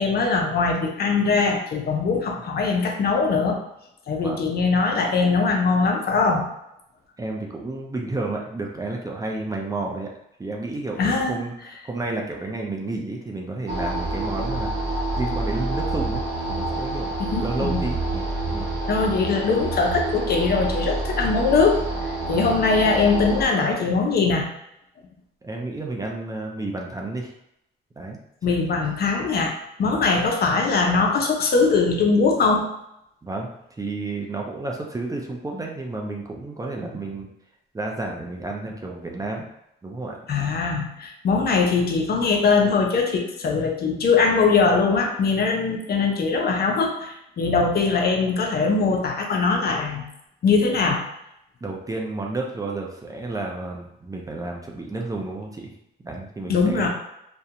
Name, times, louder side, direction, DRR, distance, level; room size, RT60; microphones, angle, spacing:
voice 1, 0.0-3.6 4.1-6.4 11.0-11.4 17.3-17.8 18.9-21.8 22.3-24.5 28.4-32.7 40.3-50.0 50.4-51.0 56.5-56.9, left 4 dB, 50° left, 2 dB, 0.5 m, -21 dB
voice 2, 7.2-10.1 10.4-16.2 16.5-17.1 17.4-18.7 22.2-22.5 25.4-27.3 28.0-28.2 28.5-28.6 29.9-30.1 33.2-33.5 33.8-37.3 37.7-39.4 39.8-40.2 51.6-55.7 56.0-56.9, right 2 dB, 15° right, 0 dB, 0.4 m, -31 dB
sound 1, 13.7-23.4, right 2 dB, 75° right, 0.7 m, -28 dB
2.4 x 2.1 x 2.8 m, 0.80 s
cardioid pair, 90°, 20 cm